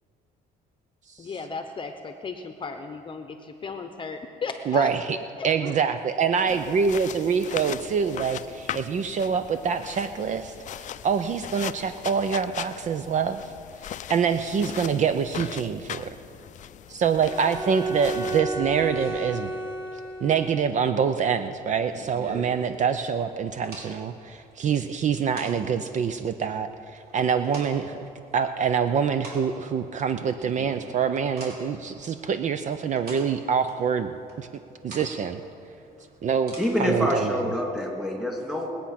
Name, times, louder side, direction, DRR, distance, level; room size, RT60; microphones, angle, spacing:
voice 1, 1.2-4.9 5.4-5.8 6.5-6.8, left 4 dB, 30° left, 6 dB, 0.9 m, -36 dB
voice 2, 4.7-5.2 5.4-13.5 14.1-16.2 16.9-19.5 20.2-34.1 34.4-34.5 34.8-35.4 36.2-37.4, right 6 dB, 45° right, 9 dB, 0.6 m, -25 dB
sound 1, 6.5-18.4, left 10 dB, 45° left, 0.5 m, -39 dB
Bowed string instrument, 17.2-20.8, right 1 dB, 25° right, 2.5 m, -33 dB
sound 2, 17.4-37.3, right 2 dB, 65° right, 4.4 m, -48 dB
voice 3, 36.6-38.7, equal, 5° right, 0 dB, 2.9 m, -26 dB
21.0 x 8.6 x 5.9 m, 2.6 s
cardioid pair, 110°, 17 cm